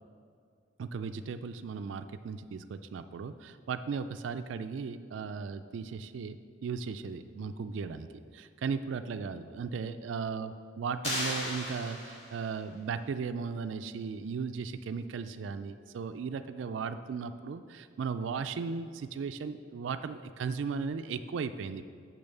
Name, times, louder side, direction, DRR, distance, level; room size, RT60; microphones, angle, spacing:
voice 1, 0.8-6.4 6.6-8.1 8.3-21.9, right 5 dB, 80° right, 10 dB, 0.4 m, -36 dB
sound 1, 11.0-12.6, left 1 dB, 35° left, 2.5 m, -35 dB
7.0 x 6.2 x 6.6 m, 2.2 s
head